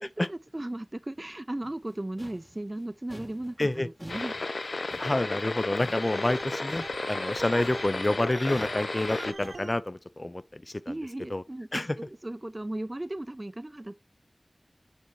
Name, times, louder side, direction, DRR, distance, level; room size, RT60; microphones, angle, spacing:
voice 1, 0.0-4.3 10.9-14.0, right 1 dB, 30° right, 0.3 m, -36 dB
sound 1, 1.6-7.3 7.6-9.8, equal, 10° left, 0.9 m, -49 dB
sound 2, 4.1-9.3, left 3 dB, 85° left, 0.5 m, -33 dB
voice 2, 5.0-10.9 11.3-11.4 11.7-12.0, left 1 dB, 40° left, 0.4 m, -28 dB
Organ, 6.0-9.7, right 2 dB, 85° right, 1.0 m, -41 dB
8.0 x 4.2 x 4.8 m
wide cardioid pair, 60°, 0 cm